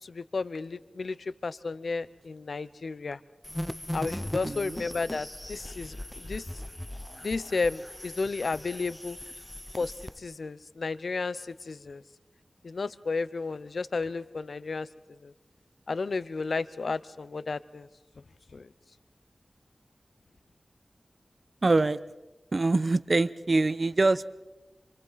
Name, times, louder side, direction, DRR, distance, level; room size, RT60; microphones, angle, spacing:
voice 1, 0.0-3.2 3.9-6.5 7.2-9.2 9.8-12.0 12.6-14.9 15.2-15.3 15.9-17.9 18.5-18.7, left 4 dB, 80° left, 15 dB, 0.7 m, -33 dB
sound 1, 3.4-10.2, left 1 dB, 10° left, 0.6 m, -39 dB
voice 2, 4.4-4.8 21.6-22.0 22.5-24.4, right 3 dB, 50° right, 15 dB, 0.7 m, -24 dB
27.5 x 25.5 x 4.0 m, 1.1 s
wide cardioid pair, 60°, 0 cm